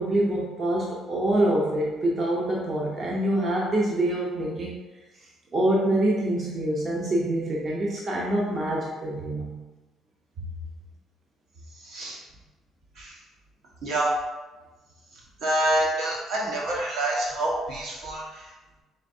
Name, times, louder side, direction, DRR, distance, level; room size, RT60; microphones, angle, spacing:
voice 1, 0.0-4.8 5.2-9.6, right 1 dB, 35° right, -3 dB, 0.5 m, -25 dB
voice 2, 11.8-12.2 13.0-13.2 13.8-14.1 15.4-18.5, right 1 dB, 75° right, -4 dB, 1.2 m, -27 dB
4.3 x 3.4 x 2.6 m, 1.2 s
cardioid pair, 125°, 0 cm